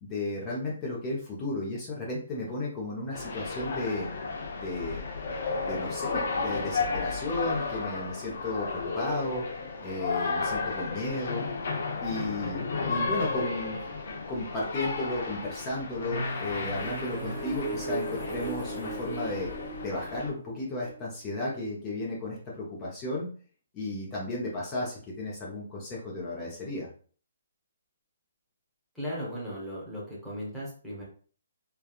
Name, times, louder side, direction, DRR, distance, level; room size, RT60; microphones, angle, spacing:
voice 1, 0.0-4.1 4.5-5.0 5.6-9.4 9.8-11.5 12.0-13.8 14.3-19.5 19.8-23.3 23.7-26.9, left 2 dB, 20° left, -4 dB, 0.7 m, -34 dB
sound 1, 3.1-20.3, left 4 dB, 55° left, 0.7 m, -33 dB
sound 2, 16.0-21.8, right 3 dB, 25° right, 0.7 m, -38 dB
voice 2, 28.9-31.0, equal, ahead, -7 dB, 1.1 m, -37 dB
3.3 x 2.3 x 2.4 m, 0.43 s
hypercardioid pair, 155°, 0 cm